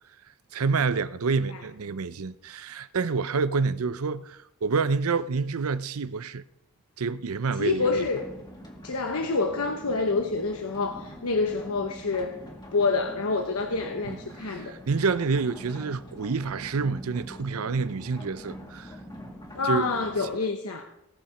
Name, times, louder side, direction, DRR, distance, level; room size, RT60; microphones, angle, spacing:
voice 1, 0.5-6.4 7.0-8.0 14.0-14.2 14.4-19.0 19.6-19.9, right 4 dB, 75° right, 0.6 m, -28 dB
voice 2, 7.6-8.3 8.8-12.3 12.7-14.7 19.5-20.9, left 3 dB, 80° left, 1.0 m, -27 dB
sound 1, 7.6-20.4, equal, 20° left, 2.2 m, -44 dB
18.5 x 7.1 x 5.0 m
head